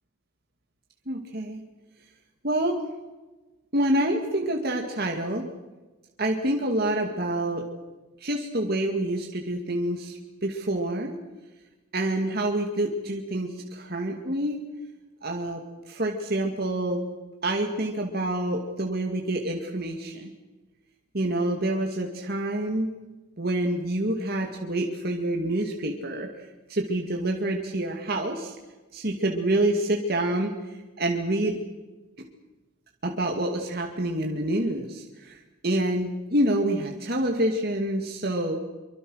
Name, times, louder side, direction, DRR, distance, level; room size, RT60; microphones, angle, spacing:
voice 1, 1.1-1.6 2.4-2.8 3.7-5.5 6.2-7.6 8.2-11.1 11.9-14.6 15.2-15.6 15.9-17.0 17.4-20.3 21.1-22.9 23.4-26.3 26.7-28.5 28.9-30.5 31.0-31.6 33.0-38.6, right 1 dB, 45° right, 1 dB, 2.3 m, -27 dB
25.5 x 25.0 x 6.5 m, 1.2 s
head